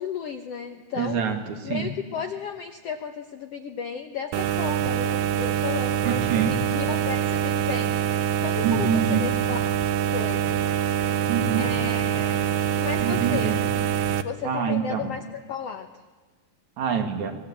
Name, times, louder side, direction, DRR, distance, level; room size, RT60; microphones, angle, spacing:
voice 1, 0.0-1.2 1.6-6.2 6.5-9.7 10.1-10.6 11.1-11.2 11.6-12.5 12.8-13.6 14.2-15.9, left 6 dB, 70° left, 6 dB, 1.5 m, -34 dB
voice 2, 1.0-1.9 6.0-6.5 8.6-9.2 11.3-11.7 13.0-13.5 14.4-15.1 16.8-17.4, right 7 dB, 60° right, 5 dB, 3.0 m, -26 dB
sound 1, 4.3-14.2, right 9 dB, 80° right, 2.6 m, -25 dB
25.5 x 19.5 x 8.7 m, 1.3 s
omnidirectional pair, 4.0 m